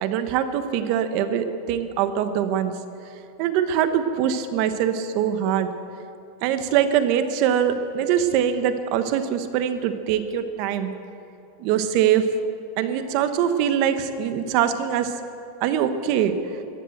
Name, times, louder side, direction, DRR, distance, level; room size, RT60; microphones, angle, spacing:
voice 1, 0.0-2.8 3.4-5.7 6.4-10.9 11.6-12.2 12.8-15.1 15.6-16.4, right 9 dB, 50° right, 10 dB, 1.1 m, -23 dB
14.5 x 11.0 x 7.9 m, 2.7 s
supercardioid pair, 140°, 0 cm